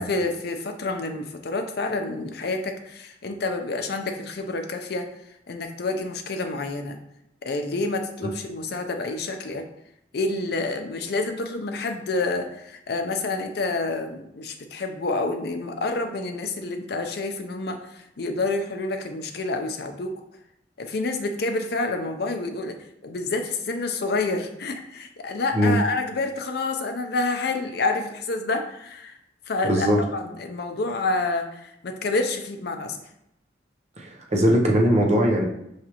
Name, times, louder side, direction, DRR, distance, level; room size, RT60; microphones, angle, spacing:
voice 1, 0.0-5.1 5.5-7.0 7.4-9.6 10.1-20.2 20.8-22.8 23.0-29.2 29.5-33.0, left 3 dB, 60° left, 5 dB, 0.5 m, -28 dB
voice 2, 29.6-30.0 34.0-35.5, equal, 40° right, 1 dB, 0.7 m, -20 dB
4.9 x 3.2 x 2.9 m, 0.79 s
head